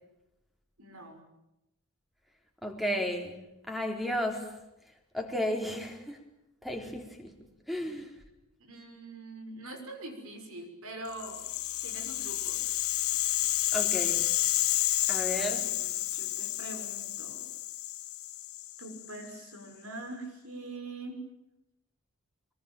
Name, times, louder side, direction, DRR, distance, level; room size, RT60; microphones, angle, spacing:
voice 1, 0.8-1.2 7.8-7.9 8.6-11.4 11.8-12.6 15.3-17.4 18.8-21.2, right 2 dB, 70° right, 6.3 m, -44 dB
voice 2, 2.6-4.5 5.1-6.2 6.6-7.3 7.7-8.1 13.7-14.3 15.1-15.7, equal, ahead, 4.0 m, -33 dB
Rattle (instrument), 11.1-19.3, left 15 dB, 70° left, 1.3 m, -31 dB
24.0 x 23.0 x 9.1 m
head